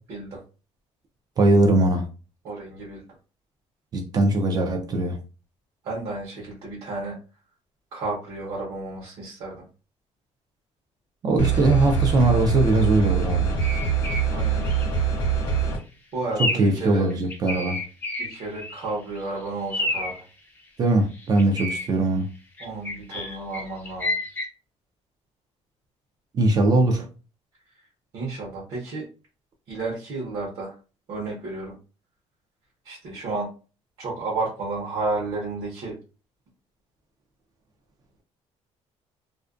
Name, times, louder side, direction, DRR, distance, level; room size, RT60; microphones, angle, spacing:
voice 1, 0.1-0.4 2.4-3.0 5.8-7.2 7.9-9.6 14.3-14.6 16.1-17.0 18.2-20.2 22.6-24.1 28.1-29.0 29.7-30.8 31.1-31.7 32.8-33.5 34.0-36.0, right 3 dB, 60° right, 0.9 m, -32 dB
voice 2, 1.4-2.1 3.9-5.2 11.2-13.5 16.4-17.8 20.8-22.3 26.3-27.1, right 2 dB, 35° right, 0.4 m, -21 dB
sound 1, 11.4-15.8, right 6 dB, 50° left, 0.9 m, -24 dB
sound 2, 13.6-14.3 14.6-14.9 15.4-15.6 16.4-16.8 17.1-18.9 19.2-19.3 19.7-20.2 21.1-21.9 22.6-24.5, left 1 dB, 15° left, 0.5 m, -30 dB
2.4 x 2.1 x 2.4 m
cardioid pair, 165°, 12 cm